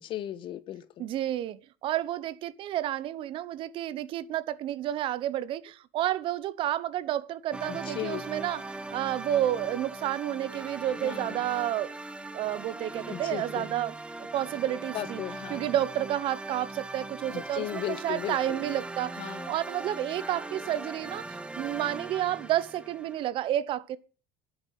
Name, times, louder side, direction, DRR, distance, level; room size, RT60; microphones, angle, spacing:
voice 1, 0.0-1.1 7.7-8.2 11.0-11.4 13.0-13.7 14.9-15.7 17.3-18.6 19.2-19.6, left 12 dB, 50° left, 1.3 m, -36 dB
voice 2, 1.0-8.6 8.9-11.9 12.3-14.0 14.3-15.2 15.5-21.3 21.5-24.0, right 12 dB, 50° right, 1.0 m, -30 dB
sound 1, 7.5-23.3, right 2 dB, 10° right, 1.3 m, -40 dB
10.5 x 8.8 x 7.6 m
supercardioid pair, 115°, 11 cm